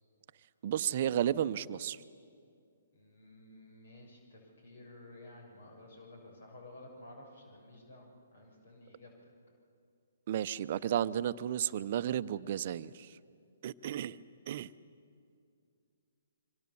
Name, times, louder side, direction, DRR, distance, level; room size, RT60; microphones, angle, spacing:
voice 1, 0.6-2.0 10.3-13.1 13.6-14.2 14.5-14.7, right 10 dB, 45° right, 14 dB, 0.7 m, -33 dB
voice 2, 2.9-9.1 13.8-13.9, left 1 dB, 65° left, 2 dB, 6.7 m, -53 dB
27.0 x 24.5 x 7.1 m, 2.4 s
figure-of-eight pair, 130°, 0 cm